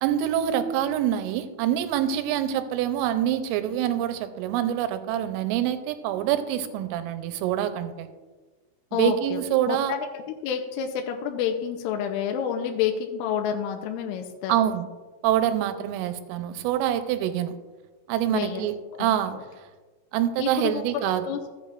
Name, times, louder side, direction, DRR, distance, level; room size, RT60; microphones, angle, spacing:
voice 1, 0.0-8.1 8.9-9.9 14.5-14.9 15.2-17.5 18.1-19.3 20.1-21.2, right 11 dB, 90° right, 9 dB, 3.3 m, -25 dB
voice 2, 8.9-9.4 9.7-14.5 18.3-18.7 18.9-19.4 20.4-20.8 21.2-21.4, left 8 dB, 90° left, 3 dB, 3.2 m, -29 dB
15.0 x 8.6 x 2.4 m, 1.3 s
omnidirectional pair, 5.7 m